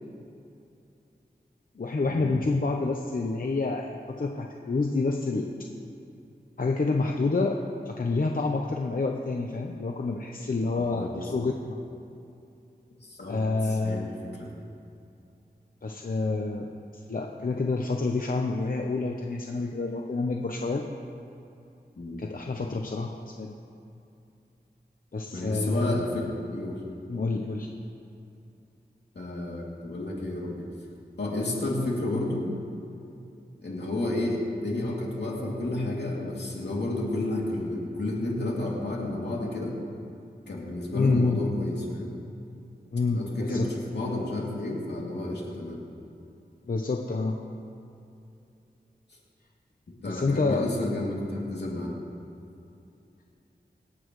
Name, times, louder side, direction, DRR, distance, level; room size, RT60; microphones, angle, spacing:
voice 1, 1.8-5.5 6.6-7.6 7.9-11.8 13.3-14.1 15.8-16.7 17.1-20.8 22.2-23.5 25.1-26.0 27.1-27.7 40.9-41.4 42.9-43.7 46.7-47.4 50.1-50.7, left 3 dB, 55° left, 2 dB, 0.8 m, -28 dB
voice 2, 10.8-11.1 13.0-13.4 13.6-14.5 22.0-22.2 25.3-26.8 29.1-30.5 31.2-32.5 33.6-39.7 40.5-42.1 43.1-45.8 50.0-51.9, left 1 dB, 80° left, -4 dB, 2.8 m, -31 dB
25.5 x 8.7 x 3.2 m, 2.7 s
wide cardioid pair, 60°, 17 cm